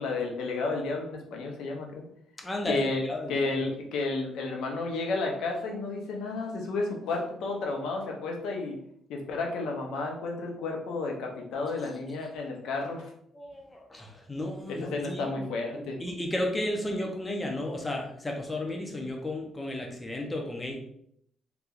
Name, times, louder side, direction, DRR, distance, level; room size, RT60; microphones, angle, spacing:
voice 1, 0.0-2.0 2.6-3.0 3.3-8.8 9.1-13.1 14.7-16.0, left 3 dB, 85° left, 1 dB, 0.8 m, -32 dB
voice 2, 2.4-3.5 13.3-15.3 15.7-20.8, left 1 dB, 20° left, 1 dB, 0.8 m, -33 dB
3.4 x 3.0 x 2.5 m, 0.70 s
cardioid pair, 90°, 0 cm